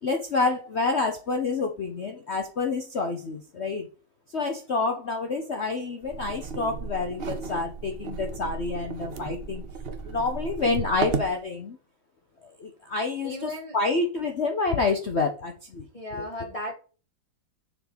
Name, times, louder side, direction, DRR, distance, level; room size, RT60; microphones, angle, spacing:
voice 1, 0.0-3.9 4.3-9.6 10.0-11.8 12.4-15.9 16.1-16.2, left 3 dB, 50° left, 0.9 m, -28 dB
sound 1, 6.0-11.4, right 4 dB, 50° right, 0.7 m, -34 dB
voice 2, 13.2-13.7 15.9-16.7, left 1 dB, 20° left, 1.3 m, -35 dB
7.2 x 4.5 x 7.0 m
omnidirectional pair, 2.1 m